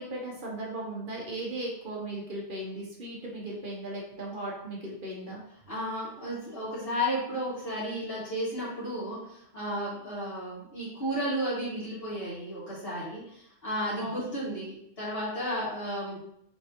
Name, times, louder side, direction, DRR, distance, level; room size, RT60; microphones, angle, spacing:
voice 1, 0.0-5.4 14.0-14.2, right 1 dB, 50° right, -3 dB, 1.0 m, -37 dB
voice 2, 5.7-16.2, equal, 60° left, -8 dB, 2.1 m, -33 dB
4.6 x 3.2 x 2.9 m, 0.73 s
omnidirectional pair, 1.2 m